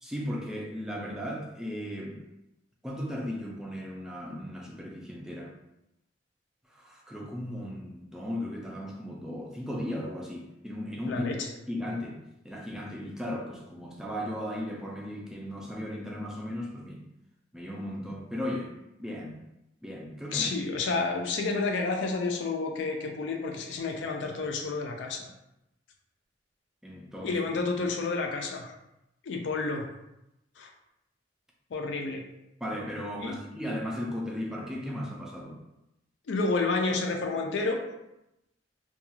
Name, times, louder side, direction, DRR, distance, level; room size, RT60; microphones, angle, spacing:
voice 1, 0.0-2.3 2.8-5.6 6.7-11.2 11.7-12.2 12.4-17.1 17.5-18.7 19.0-19.4 19.8-20.6 26.8-27.4 32.6-35.6, left 1 dB, 5° right, -2 dB, 0.3 m, -36 dB
voice 2, 11.1-11.5 20.3-25.3 27.2-28.7 29.2-29.9 30.6-30.7 31.7-32.2 33.2-33.4 36.3-37.8, left 3 dB, 70° left, 3 dB, 0.4 m, -30 dB
2.3 x 2.3 x 3.0 m, 0.89 s
head